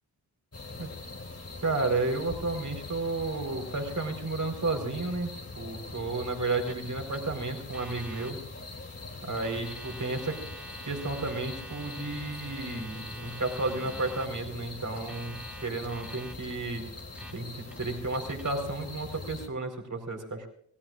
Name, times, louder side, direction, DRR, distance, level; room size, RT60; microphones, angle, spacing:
sound 1, 0.5-19.5, left 3 dB, 30° left, 3.0 m, -42 dB
voice 1, 1.6-5.3 5.6-8.4 9.2-10.4 10.9-16.9 17.3-20.5, right 3 dB, 40° right, 3 dB, 4.5 m, -32 dB
Alarm, 6.5-6.8 7.1-7.2 7.7-8.3 9.2-14.3 15.0-16.5 17.0-17.3 17.7-18.5, right 1 dB, 5° right, 2.6 m, -47 dB
27.0 x 17.5 x 2.5 m, 0.63 s
supercardioid pair, 40°, 48 cm